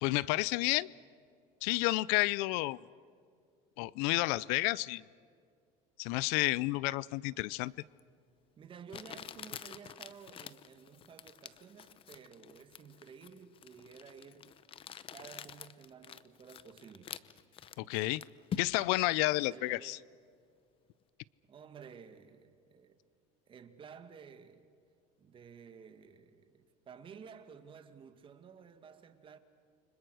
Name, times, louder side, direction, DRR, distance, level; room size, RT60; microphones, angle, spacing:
voice 1, 0.0-0.9 1.6-2.8 3.8-5.0 6.0-7.7 17.8-18.2 18.6-20.0, left 20 dB, 70° left, 0.5 m, -30 dB
Crumpling crinkling, 8.0-8.1 8.9-19.0, left 8 dB, 30° left, 0.8 m, -47 dB
voice 2, 8.6-14.6 15.1-17.2 19.5-20.1 21.5-23.0 23.5-24.7 25.2-29.4, right 6 dB, 30° right, 2.0 m, -53 dB
29.5 x 25.5 x 6.3 m
cardioid pair, 135°, 17 cm